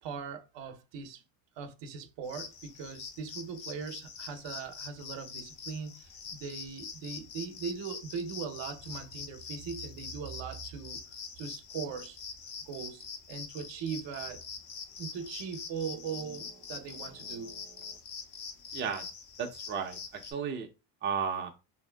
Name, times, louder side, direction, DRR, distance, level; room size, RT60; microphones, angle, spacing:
voice 1, 0.0-1.2 1.6-11.0 11.4-12.2 12.7-14.4 15.0-18.0, right 6 dB, 60° right, 0.7 m, -40 dB
sound 1, 2.2-20.3, left 6 dB, 75° left, 0.8 m, -44 dB
voice 2, 18.7-19.0 19.4-20.7 21.0-21.5, right 6 dB, 25° right, 0.5 m, -34 dB
2.9 x 2.7 x 2.2 m
supercardioid pair, 90°, 49 cm